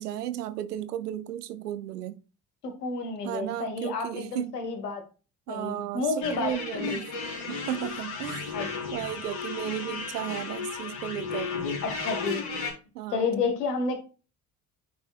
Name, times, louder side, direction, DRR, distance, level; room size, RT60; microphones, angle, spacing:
voice 1, 0.0-2.2 3.2-4.5 5.5-7.1 7.5-8.5 8.9-11.5 12.9-13.3, right 11 dB, 80° right, 0.6 m, -34 dB
voice 2, 2.6-5.0 5.5-7.0 8.5-8.9 11.8-12.4 13.1-14.0, left 4 dB, 80° left, 1.4 m, -30 dB
sound 1, 6.2-12.7, left 5 dB, 55° left, 3.0 m, -34 dB
9.4 x 5.4 x 2.3 m
figure-of-eight pair, 45°, 47 cm